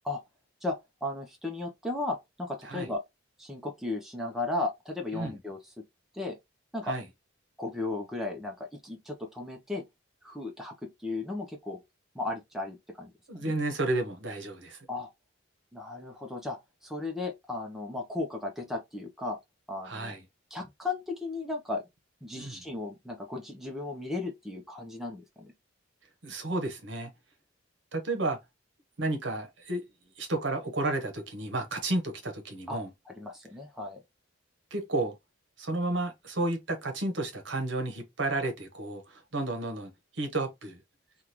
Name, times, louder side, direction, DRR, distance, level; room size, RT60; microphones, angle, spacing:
voice 1, 0.6-3.0 3.4-5.6 6.1-6.4 6.7-6.9 7.6-9.9 10.2-11.8 12.1-13.5 14.9-15.1 15.7-19.4 19.7-20.2 20.5-21.8 22.2-25.5 32.7-32.8 33.1-34.0, left 2 dB, ahead, 0.6 m, -35 dB
voice 2, 13.3-14.8 19.8-20.2 22.4-22.6 26.2-27.1 27.9-28.4 29.0-29.8 30.2-32.9 34.7-35.1 35.6-40.8, right 2 dB, 60° right, 1.0 m, -32 dB
3.6 x 2.4 x 2.9 m
head